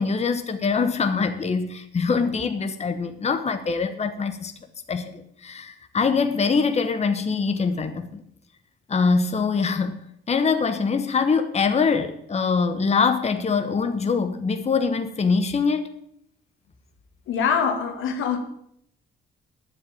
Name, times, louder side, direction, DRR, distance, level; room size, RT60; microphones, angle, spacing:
voice 1, 0.0-4.5 4.9-8.2 8.9-10.0 10.3-15.9, left 5 dB, 35° left, 1.2 m, -23 dB
voice 2, 17.3-18.4, left 6 dB, 85° left, 2.0 m, -24 dB
9.8 x 7.7 x 8.8 m
cardioid pair, 90°, 20 cm